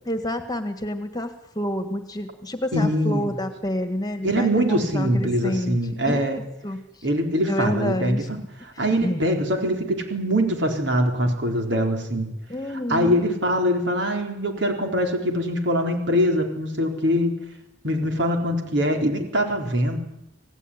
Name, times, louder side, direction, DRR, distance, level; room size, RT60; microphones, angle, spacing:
voice 1, 0.1-5.8 6.1-6.2 6.6-7.1 7.5-8.3 8.7-9.4 12.5-13.2, left 1 dB, 20° left, 8 dB, 1.7 m, -28 dB
voice 2, 2.7-3.3 4.2-6.4 7.0-12.3 12.9-17.3 17.8-20.0, equal, 75° right, 3 dB, 4.2 m, -23 dB
27.0 x 17.5 x 10.0 m, 0.84 s
head